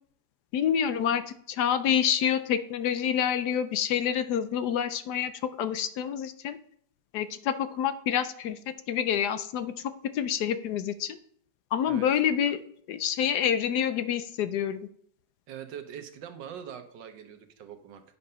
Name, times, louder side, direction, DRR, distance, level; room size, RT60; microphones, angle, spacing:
voice 1, 0.5-6.6 7.1-11.2 11.7-12.6 12.9-14.8, left 9 dB, 70° left, 12 dB, 1.1 m, -27 dB
voice 2, 15.5-18.0, right 8 dB, 85° right, 8 dB, 1.6 m, -42 dB
9.5 x 5.5 x 5.5 m, 0.65 s
omnidirectional pair, 1.9 m